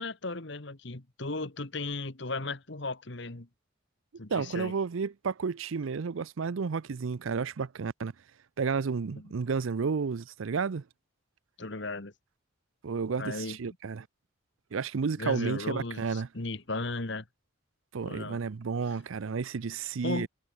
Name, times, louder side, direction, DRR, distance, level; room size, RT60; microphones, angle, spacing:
voice 1, 0.0-3.5 4.2-4.7 9.1-9.3 11.6-12.1 13.2-13.6 15.2-17.2 18.0-18.4 20.0-20.3, left 3 dB, 55° left, 1.6 m, -36 dB
voice 2, 4.3-8.1 8.6-10.8 12.8-14.1 14.7-16.3 17.9-20.3, right 5 dB, 70° right, 0.5 m, -31 dB
head